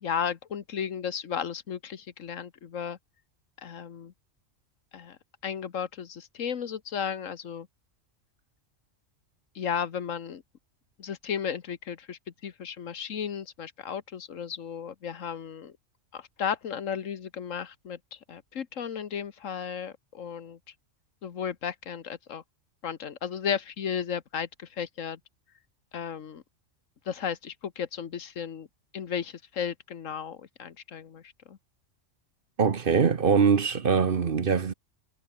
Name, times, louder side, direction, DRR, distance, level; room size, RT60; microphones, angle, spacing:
voice 1, 0.0-3.0 3.6-4.1 4.9-7.7 9.5-10.4 11.0-15.7 16.1-20.6 21.2-22.4 22.8-25.2 25.9-26.4 27.0-28.7 28.9-31.6, left 7 dB, 80° left, 1.6 m, -34 dB
voice 2, 32.6-34.7, right 6 dB, 45° right, 1.1 m, -23 dB
omnidirectional pair, 1.3 m